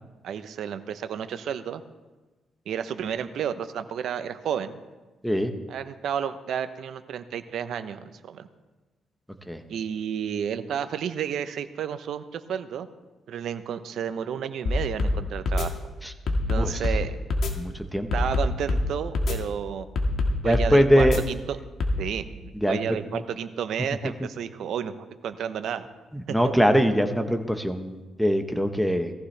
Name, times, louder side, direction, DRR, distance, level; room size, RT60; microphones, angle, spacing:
voice 1, 0.2-1.8 2.7-4.8 5.7-8.5 9.7-12.9 13.3-15.7 16.3-17.2 18.1-19.9 20.4-21.6 22.0-24.9 25.2-25.9 26.3-26.5, right 8 dB, 70° right, 10 dB, 0.8 m, -31 dB
sound 1, 14.7-15.2 15.5-15.7 16.3-17.0 17.3-17.5 18.1-18.8 19.2-19.4 20.0-20.7 21.0-21.2 21.8-22.0, left 2 dB, 60° left, 1.8 m, -24 dB
voice 2, 17.6-18.1 20.4-21.2 22.6-23.0 26.1-29.1, equal, ahead, 6 dB, 1.1 m, -22 dB
18.5 x 14.5 x 3.4 m, 1.2 s
cardioid pair, 105°, 0 cm